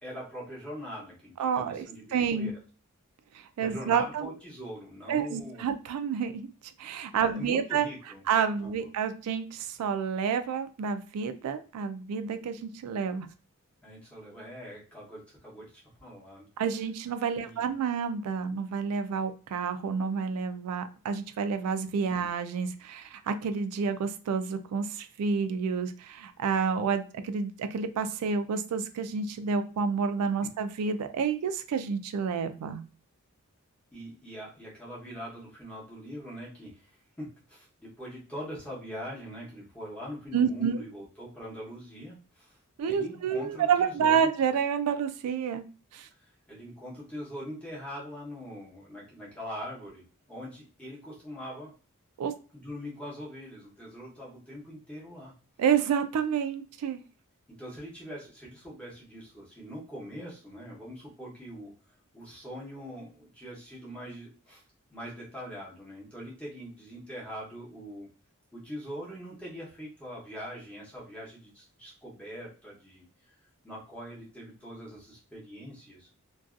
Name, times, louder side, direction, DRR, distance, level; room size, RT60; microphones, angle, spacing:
voice 1, 0.0-2.6 3.6-5.7 7.2-8.2 8.6-8.7 13.8-16.5 17.4-17.7 22.1-22.3 33.9-42.6 42.8-44.3 46.2-51.7 52.5-55.3 57.5-61.7 62.1-64.6 64.9-68.1 68.5-73.3 73.6-76.1, equal, 5° left, -6 dB, 0.8 m, -42 dB
voice 2, 1.4-1.9 2.1-2.5 3.6-4.3 5.1-6.5 6.8-7.9 8.3-13.3 16.6-32.8 40.3-40.8 42.8-45.6 45.9-46.1 52.2-52.3 55.6-57.0, right 6 dB, 90° right, 11 dB, 0.3 m, -29 dB
2.6 x 2.3 x 2.4 m, 0.36 s
head